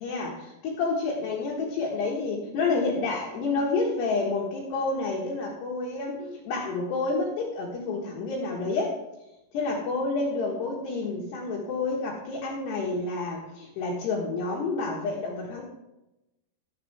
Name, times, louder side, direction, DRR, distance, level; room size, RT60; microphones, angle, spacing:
voice 1, 0.0-8.9 9.5-15.6, left 3 dB, 65° left, -3 dB, 3.2 m, -29 dB
16.0 x 6.8 x 3.4 m, 0.93 s
omnidirectional pair, 5.9 m